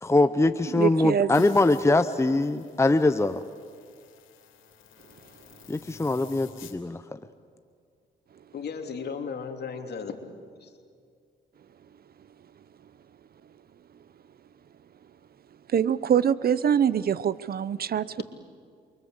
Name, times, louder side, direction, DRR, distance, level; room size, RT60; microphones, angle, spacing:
voice 1, 0.0-3.4 5.7-7.2, left 2 dB, 15° left, 10 dB, 0.9 m, -23 dB
voice 2, 0.7-1.3 15.7-18.2, right 8 dB, 50° right, 17 dB, 0.8 m, -24 dB
sound 1, 1.3-6.8, left 8 dB, 80° left, 3.5 m, -52 dB
voice 3, 8.5-10.2 10.6-10.7, left 6 dB, 55° left, 4 dB, 3.2 m, -35 dB
28.5 x 24.5 x 8.1 m, 2.3 s
cardioid pair, 90°, 20 cm